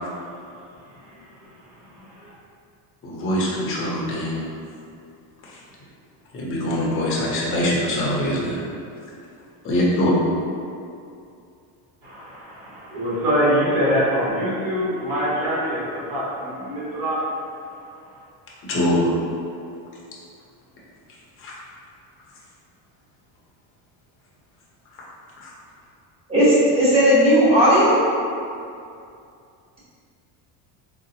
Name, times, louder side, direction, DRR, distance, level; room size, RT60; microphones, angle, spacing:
voice 1, 2.0-2.3 12.0-17.2, equal, 50° right, -9 dB, 1.3 m, -24 dB
voice 2, 3.0-4.4 6.3-8.6 9.6-10.1 18.7-19.1 21.4-21.5 25.4-25.5, left 1 dB, 30° left, -6 dB, 0.6 m, -23 dB
voice 3, 26.3-28.0, equal, 15° right, -11 dB, 1.0 m, -15 dB
3.8 x 2.1 x 2.7 m, 2.5 s
cardioid pair, 145°, 42 cm